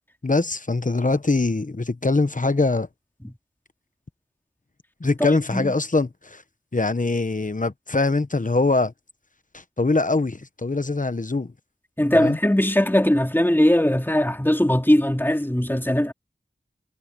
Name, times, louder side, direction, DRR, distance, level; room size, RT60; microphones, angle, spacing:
voice 1, 0.2-2.9 5.0-6.4 6.7-8.9 9.5-11.5 12.1-12.4, left 3 dB, 40° left, 1.0 m, -23 dB
voice 2, 5.2-5.7 12.0-16.1, left 1 dB, 10° left, 2.7 m, -20 dB
wide cardioid pair, 50°, 21 cm